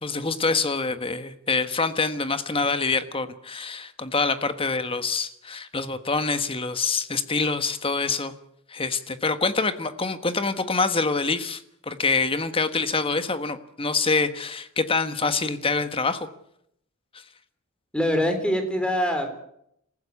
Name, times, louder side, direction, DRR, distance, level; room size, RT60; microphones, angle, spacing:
voice 1, 0.0-8.3 8.7-16.3, left 4 dB, 25° left, 11 dB, 1.4 m, -26 dB
voice 2, 17.9-19.3, equal, 5° left, 6 dB, 3.7 m, -24 dB
27.0 x 15.0 x 8.3 m, 0.75 s
head